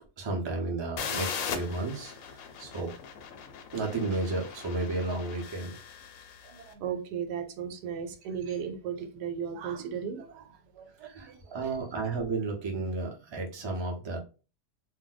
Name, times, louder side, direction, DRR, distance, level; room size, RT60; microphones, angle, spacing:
voice 1, 0.2-2.9 3.7-5.7 11.0-14.2, right 3 dB, 40° right, 0.3 m, -33 dB
sound 1, 1.0-6.6, left 7 dB, 70° left, 0.9 m, -39 dB
voice 2, 6.5-11.8, right 7 dB, 85° right, 1.2 m, -36 dB
2.6 x 2.1 x 3.9 m
omnidirectional pair, 1.7 m